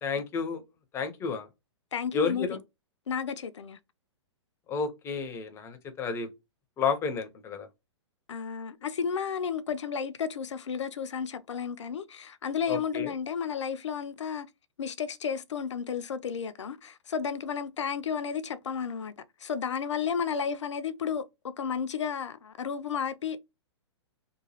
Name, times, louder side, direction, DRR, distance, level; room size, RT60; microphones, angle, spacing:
voice 1, 0.0-0.6 0.9-1.5 2.1-2.6 4.7-6.3 6.8-7.7 12.7-13.1, left 5 dB, 15° left, 0.5 m, -31 dB
voice 2, 1.9-2.6 3.1-3.8 8.3-14.5 14.8-19.1 19.4-23.4, left 7 dB, 70° left, 0.4 m, -32 dB
2.9 x 2.2 x 2.7 m
figure-of-eight pair, 115°, 15 cm